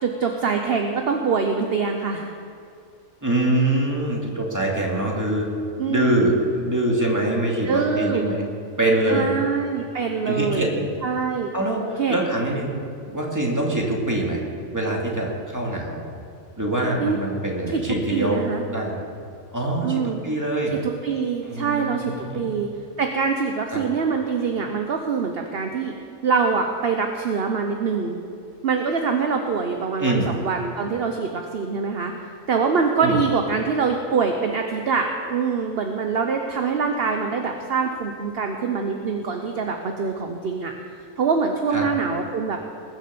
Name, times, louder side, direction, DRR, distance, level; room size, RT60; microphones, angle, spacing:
voice 1, 0.0-2.3 5.8-6.4 7.6-8.2 9.1-10.7 11.0-11.5 12.0-12.2 17.0-17.2 17.7-18.6 19.8-20.2 20.7-22.7 23.0-25.9 26.2-28.2 28.6-32.1 32.5-40.7 41.2-42.6, right 5 dB, 50° right, 4 dB, 1.0 m, -24 dB
voice 2, 3.2-5.5 5.9-8.4 8.8-9.3 10.3-10.9 11.5-12.8 13.1-14.4 14.7-16.0 16.6-18.4 18.7-19.0 19.5-20.8 21.4-22.5 23.7-23.8 30.0-30.3 33.0-33.2 41.7-41.8, right 1 dB, 10° right, -2 dB, 2.3 m, -24 dB
20.5 x 7.5 x 6.9 m, 2.4 s
omnidirectional pair, 1.5 m